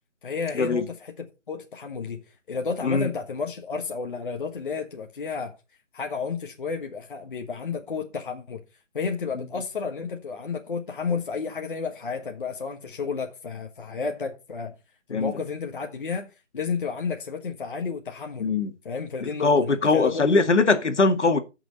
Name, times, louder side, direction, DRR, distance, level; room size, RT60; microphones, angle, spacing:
voice 1, 0.2-2.2 2.5-5.6 5.9-8.6 8.9-14.8 15.1-16.3 16.5-18.5 18.8-20.4, left 5 dB, 45° left, 1.4 m, -31 dB
voice 2, 18.4-18.7 19.2-21.4, left 3 dB, 65° left, 2.0 m, -21 dB
13.5 x 6.2 x 4.1 m
figure-of-eight pair, 165°, 37 cm